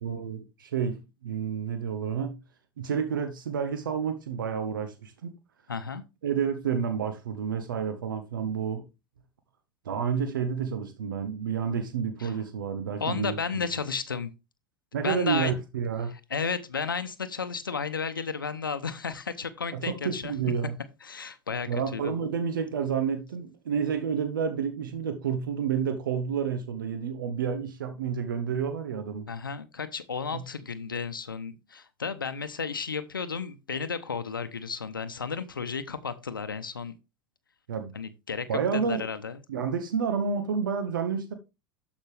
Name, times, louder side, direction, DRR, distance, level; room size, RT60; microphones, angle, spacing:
voice 1, 0.0-2.4 2.8-5.3 6.2-8.8 9.8-13.6 14.9-16.1 19.7-20.8 21.7-29.3 30.3-30.4 37.7-37.9 38.5-39.0 39.5-41.3, right 7 dB, 75° right, 1.0 m, -30 dB
voice 2, 5.7-6.0 12.2-12.4 13.0-14.3 15.0-15.6 16.1-20.3 21.0-22.1 29.3-36.9 37.9-38.5 38.7-39.4, left 5 dB, 90° left, 0.8 m, -33 dB
12.0 x 5.2 x 3.3 m
hypercardioid pair, 85°, 11 cm